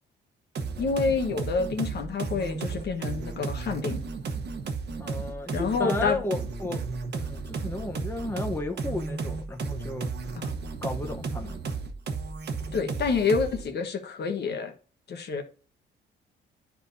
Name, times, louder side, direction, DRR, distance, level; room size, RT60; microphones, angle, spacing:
sound 1, 0.6-13.7, right 4 dB, 60° right, 1.2 m, -34 dB
voice 1, 0.8-4.0 5.5-6.2 10.4-10.6 12.7-14.7 15.1-15.4, left 5 dB, 55° left, 1.3 m, -28 dB
voice 2, 5.0-6.8 7.1-10.1 10.8-11.6, left 2 dB, 10° left, 0.9 m, -33 dB
10.0 x 4.7 x 2.7 m
cardioid pair, 90°, 20 cm